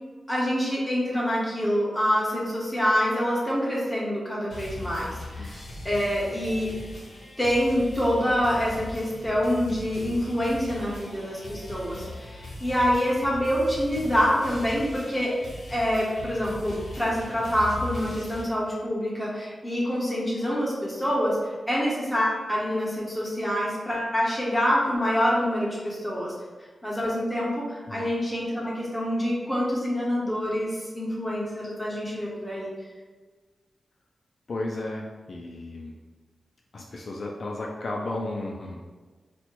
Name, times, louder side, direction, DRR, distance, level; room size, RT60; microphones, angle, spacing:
voice 1, 0.3-6.7 7.4-15.3 15.7-21.4 21.7-26.3 26.8-32.7, equal, 5° left, -6 dB, 1.1 m, -26 dB
sound 1, 4.5-18.4, left 1 dB, 70° left, 1.3 m, -39 dB
voice 2, 34.5-36.0 36.7-38.8, left 2 dB, 50° left, -1 dB, 0.4 m, -34 dB
4.2 x 2.2 x 4.5 m, 1.4 s
wide cardioid pair, 160°, 0 cm